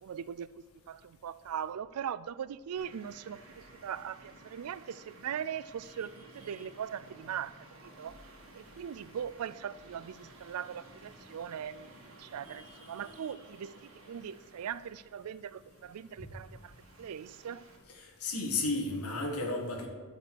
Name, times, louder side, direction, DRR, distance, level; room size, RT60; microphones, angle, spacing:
voice 1, 0.0-8.2 8.5-11.9 12.2-16.7 17.0-17.6, right 8 dB, 80° right, 0.4 m, -40 dB
Traffic noise roadway noise, 2.8-17.8, right 1 dB, 65° right, 1.9 m, -55 dB
voice 2, 17.9-19.9, left 3 dB, 85° left, 1.7 m, -33 dB
12.5 x 5.3 x 6.2 m
head